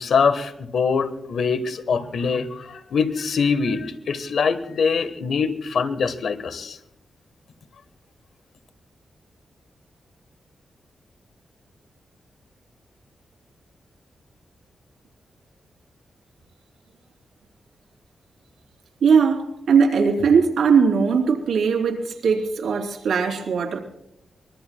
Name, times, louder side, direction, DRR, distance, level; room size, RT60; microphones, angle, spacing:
voice 1, 0.0-6.8, left 5 dB, 75° left, 1.3 m, -23 dB
voice 2, 19.0-23.8, right 6 dB, 85° right, 3.2 m, -19 dB
25.0 x 22.0 x 2.3 m
wide cardioid pair, 105°, 0 cm